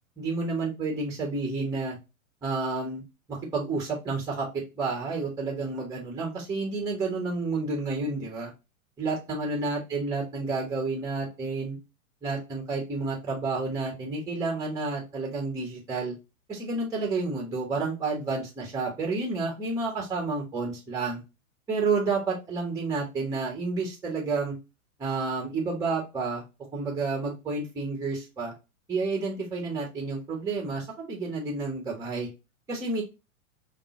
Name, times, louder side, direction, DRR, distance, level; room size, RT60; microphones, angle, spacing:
voice 1, 0.2-2.0 2.4-3.0 3.3-8.5 9.0-11.8 12.2-16.1 16.5-21.2 21.7-24.5 25.0-26.4 26.7-28.5 28.9-32.3 32.7-33.0, right 3 dB, 10° right, 0 dB, 0.9 m, -30 dB
5.2 x 2.2 x 2.8 m, 0.26 s
figure-of-eight pair, 100°, 42 cm